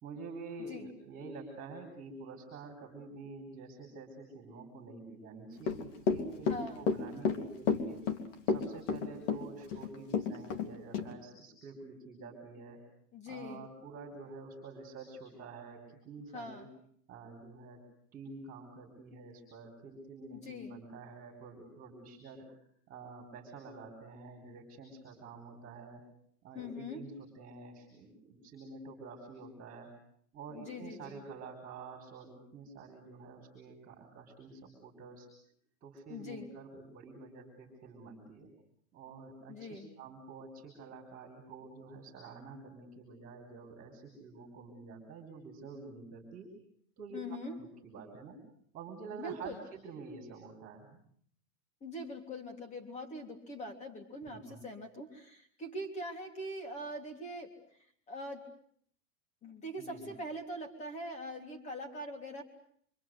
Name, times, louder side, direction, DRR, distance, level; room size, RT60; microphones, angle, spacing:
voice 1, 0.0-8.0 8.5-12.8 13.3-16.7 17.1-17.8 18.1-22.6 22.9-26.0 26.4-29.9 30.3-35.3 35.8-38.5 38.9-46.5 47.0-48.4 48.7-51.0 54.2-54.6 59.8-60.1, right 4 dB, 15° right, 3 dB, 4.9 m, -48 dB
Run / Walk footsteps, 5.6-10.7 10.9-11.1, left 5 dB, 45° left, 3.1 m, -31 dB
voice 2, 6.5-6.8 13.1-13.7 16.3-16.7 20.3-20.8 26.5-27.0 30.5-31.2 36.1-36.5 39.5-39.9 47.1-47.6 49.2-49.6 51.8-57.5 58.1-58.5 59.4-62.4, left 1 dB, 15° left, 4 dB, 3.4 m, -42 dB
26.0 x 25.5 x 8.0 m, 0.64 s
supercardioid pair, 165°, 48 cm